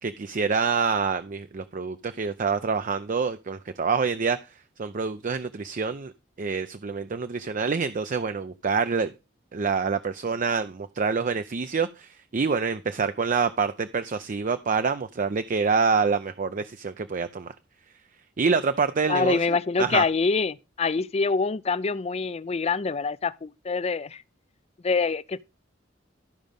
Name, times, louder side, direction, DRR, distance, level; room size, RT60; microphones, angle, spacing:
voice 1, 0.0-4.4 4.8-6.1 6.4-9.1 9.5-17.5 18.4-20.0, right 5 dB, 45° right, 0.5 m, -26 dB
voice 2, 19.1-24.2 24.8-25.4, left 4 dB, 35° left, 0.4 m, -25 dB
13.0 x 5.2 x 5.2 m
head